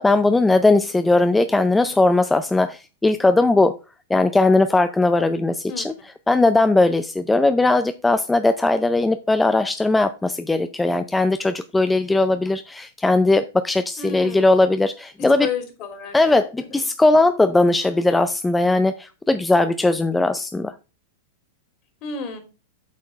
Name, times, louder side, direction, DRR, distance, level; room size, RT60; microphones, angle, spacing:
voice 1, 0.0-3.7 4.1-15.5 16.1-20.7, left 2 dB, 10° left, 10 dB, 0.5 m, -19 dB
voice 2, 14.0-14.5 15.4-16.3 16.7-16.8 22.0-22.4, left 6 dB, 45° left, 6 dB, 3.1 m, -31 dB
8.5 x 4.4 x 5.1 m, 0.31 s
hypercardioid pair, 110°, 0 cm